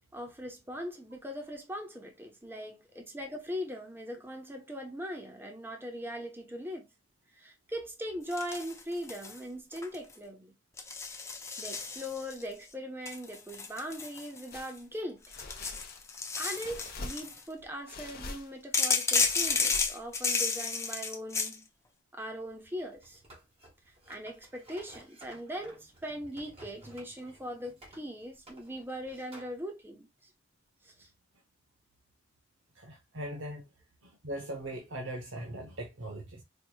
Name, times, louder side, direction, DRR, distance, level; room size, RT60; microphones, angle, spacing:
voice 1, 0.1-6.9 7.3-10.5 11.6-15.2 16.4-21.7 22.1-23.2 24.1-30.1 30.8-31.1, equal, 10° right, 0.9 m, -40 dB
sound 1, 8.3-9.4 9.7-10.1 10.8-12.4 13.0-14.8 15.2-17.4 18.7-21.5, left 4 dB, 15° left, 0.6 m, -32 dB
sound 2, 14.5-14.8 15.3-16.2 16.6-17.5 17.9-18.6 19.0-20.2, left 3 dB, 50° left, 0.8 m, -44 dB
sound 3, 22.3-29.6, right 1 dB, 30° right, 1.6 m, -55 dB
voice 2, 32.7-33.6 34.0-36.4, right 1 dB, 85° right, 0.9 m, -40 dB
4.6 x 3.0 x 2.2 m
head